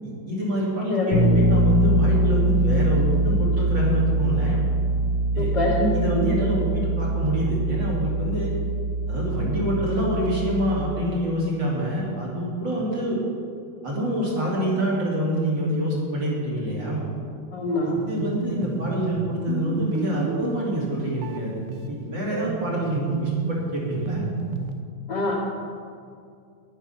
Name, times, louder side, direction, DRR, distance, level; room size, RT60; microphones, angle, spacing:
voice 1, 0.0-4.6 5.3-5.5 5.9-8.5 9.1-13.2 13.8-17.1 17.8-21.6 21.9-24.3, equal, 60° right, -5 dB, 3.5 m, -26 dB
voice 2, 0.9-1.3 5.4-6.3 17.5-18.0 25.1-25.4, left 1 dB, 55° left, -8 dB, 2.3 m, -25 dB
Bass guitar, 1.1-10.9, right 1 dB, 75° left, 2.0 m, -23 dB
sound 1, 18.0-24.8, right 5 dB, 90° right, 1.7 m, -32 dB
10.5 x 10.0 x 5.7 m, 2.3 s
omnidirectional pair, 2.3 m